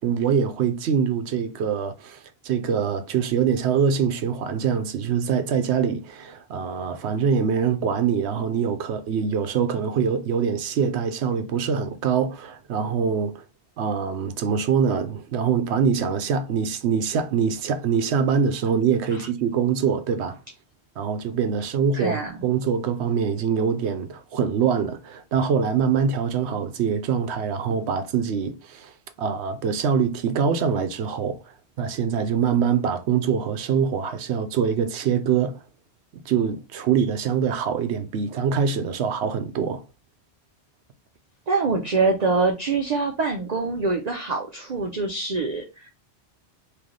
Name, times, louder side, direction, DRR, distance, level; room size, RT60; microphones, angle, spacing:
voice 1, 0.0-13.4 13.8-20.4 21.0-31.4 31.8-35.6 36.1-39.8, right 7 dB, 80° right, 0.9 m, -24 dB
voice 2, 21.9-22.3 41.5-45.9, right 4 dB, 45° right, 0.7 m, -24 dB
3.3 x 2.8 x 3.7 m
omnidirectional pair, 1.1 m